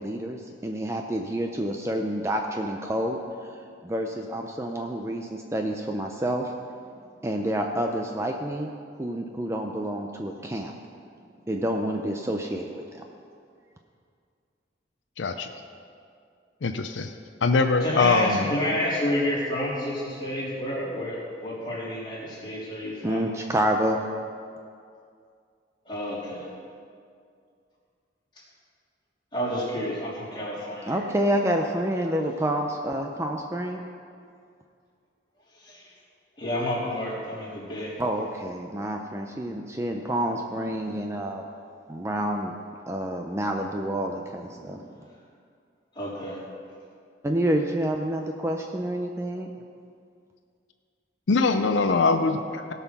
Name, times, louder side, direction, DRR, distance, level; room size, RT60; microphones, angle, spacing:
voice 1, 0.0-3.2 3.8-6.5 7.2-8.7 9.0-10.7 11.5-12.8 23.0-24.0 30.9-33.8 38.0-41.4 41.9-42.5 42.9-44.9 47.2-49.5, right 1 dB, 15° right, 3 dB, 0.5 m, -28 dB
voice 2, 15.2-15.5 16.6-17.1 17.4-18.5 51.3-52.7, left 4 dB, 85° left, 7 dB, 0.5 m, -22 dB
voice 3, 17.8-23.2 25.8-26.5 29.3-31.0 35.6-35.9 36.4-38.0 45.9-46.4, equal, 25° left, -7 dB, 3.4 m, -29 dB
17.0 x 5.7 x 6.0 m, 2.3 s
head